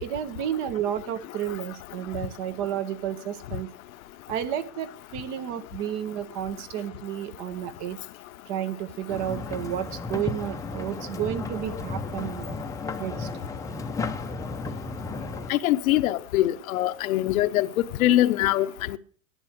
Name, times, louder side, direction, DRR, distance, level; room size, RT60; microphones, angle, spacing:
voice 1, 0.0-3.7 4.3-8.0 8.5-12.6 13.0-13.3, right 10 dB, 45° right, 1.5 m, -31 dB
sound 1, 9.1-15.5, left 3 dB, 10° left, 0.7 m, -34 dB
voice 2, 15.5-19.0, left 14 dB, 75° left, 1.0 m, -23 dB
11.0 x 9.7 x 6.4 m
supercardioid pair, 135°, 42 cm